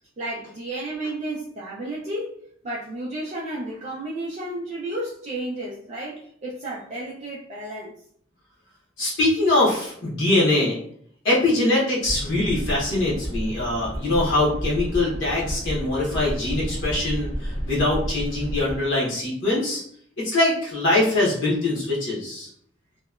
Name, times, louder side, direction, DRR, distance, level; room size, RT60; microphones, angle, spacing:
voice 1, 0.2-2.4 2.6-7.9, right 1 dB, 35° right, -6 dB, 0.4 m, -32 dB
voice 2, 9.0-10.8 11.2-19.8 20.2-22.5, left 2 dB, 75° left, -5 dB, 0.9 m, -23 dB
sound 1, 12.0-18.8, equal, 40° left, 0.9 m, -31 dB
2.8 x 2.1 x 2.3 m, 0.64 s
head